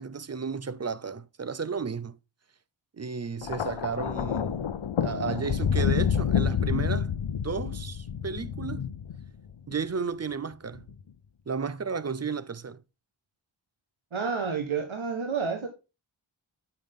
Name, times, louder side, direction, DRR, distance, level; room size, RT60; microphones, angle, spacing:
voice 1, 0.0-2.2 3.0-4.7 5.0-7.1 7.4-8.9 9.7-10.8 11.5-12.8, right 5 dB, 35° right, 0.5 m, -33 dB
Thunder, 3.4-9.8 10.7-11.0, left 8 dB, 70° left, 0.7 m, -28 dB
voice 2, 14.1-15.7, right 5 dB, 75° right, 1.4 m, -29 dB
9.1 x 6.6 x 3.6 m
wide cardioid pair, 60°, 48 cm